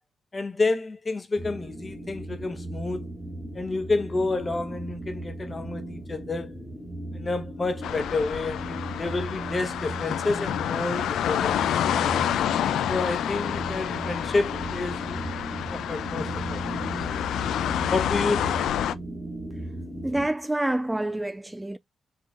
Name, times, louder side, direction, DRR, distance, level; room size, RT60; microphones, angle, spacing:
voice 1, 0.3-3.0 3.5-6.6 7.1-11.6 12.0-12.2 12.9-15.2 15.7-16.6 17.9-18.6, left 3 dB, 30° left, 1.0 m, -29 dB
sound 1, 1.4-20.3, right 1 dB, 10° left, 1.2 m, -37 dB
sound 2, 7.8-18.9, left 10 dB, 85° left, 0.3 m, -28 dB
voice 2, 20.0-21.8, right 1 dB, 10° right, 0.3 m, -27 dB
4.0 x 3.7 x 2.5 m
cardioid pair, 80°, 0 cm